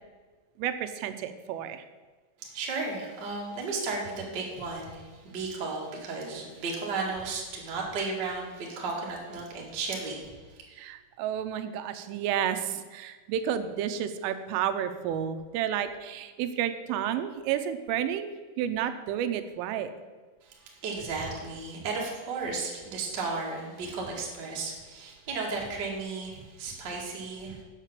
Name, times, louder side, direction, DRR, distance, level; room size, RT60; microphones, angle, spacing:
voice 1, 0.6-1.8 10.7-18.3 18.6-19.9, right 9 dB, 85° right, 9 dB, 3.2 m, -31 dB
voice 2, 2.5-10.3 20.8-27.6, right 3 dB, 45° right, -3 dB, 1.4 m, -34 dB
8.2 x 7.3 x 7.5 m, 1.3 s
omnidirectional pair, 5.6 m